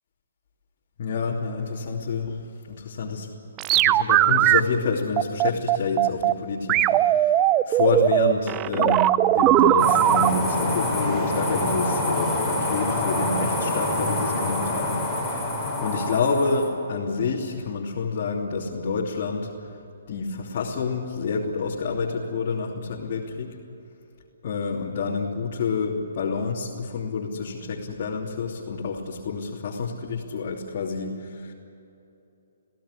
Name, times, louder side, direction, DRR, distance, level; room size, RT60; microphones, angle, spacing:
voice 1, 1.0-2.4 2.7-3.3 3.7-7.4 7.7-15.0 15.3-15.4 15.8-19.8 20.1-23.5 24.4-31.5, left 4 dB, 45° left, -4 dB, 3.0 m, -28 dB
sound 1, 3.6-4.6 5.2-6.3 6.7-10.3, right 14 dB, 20° right, 0.5 m, -19 dB
sound 2, 9.8-16.7, left 1 dB, ahead, 6.8 m, -26 dB
23.0 x 17.0 x 9.9 m, 2.8 s
hypercardioid pair, 150°, 0 cm